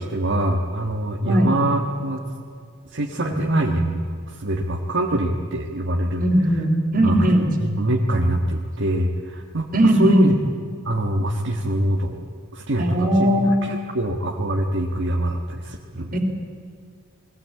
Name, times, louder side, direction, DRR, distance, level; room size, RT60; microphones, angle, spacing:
voice 1, 0.0-2.2 2.9-6.3 7.0-10.4 10.8-12.2 12.5-16.2, right 1 dB, 60° right, 1 dB, 1.5 m, -24 dB
voice 2, 3.3-3.6 6.2-7.5 9.7-10.3 12.8-13.5 16.1-16.2, equal, 40° right, 4 dB, 3.3 m, -18 dB
21.0 x 16.5 x 8.5 m, 2.3 s
head